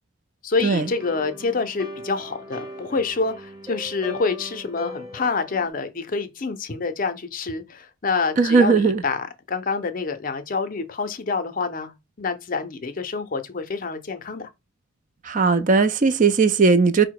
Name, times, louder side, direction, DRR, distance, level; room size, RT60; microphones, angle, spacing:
voice 1, 0.4-14.5, left 4 dB, 45° left, 0.5 m, -27 dB
sound 1, 0.7-5.7, equal, 20° right, 0.8 m, -39 dB
voice 2, 8.4-9.0 15.2-17.1, right 4 dB, 40° right, 0.4 m, -18 dB
4.9 x 2.1 x 4.6 m
head